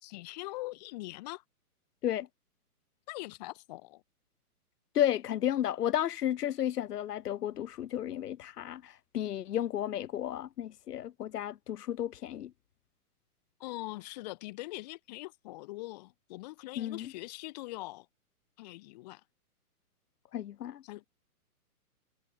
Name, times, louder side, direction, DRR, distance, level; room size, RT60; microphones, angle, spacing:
voice 1, 0.0-1.4 3.1-4.0 13.6-18.1 18.6-19.2 20.8-21.1, left 20 dB, 25° left, 2.1 m, -42 dB
voice 2, 4.9-12.5 16.8-17.1 20.3-20.8, left 11 dB, 90° left, 0.8 m, -33 dB
hypercardioid pair, 165°, 46 cm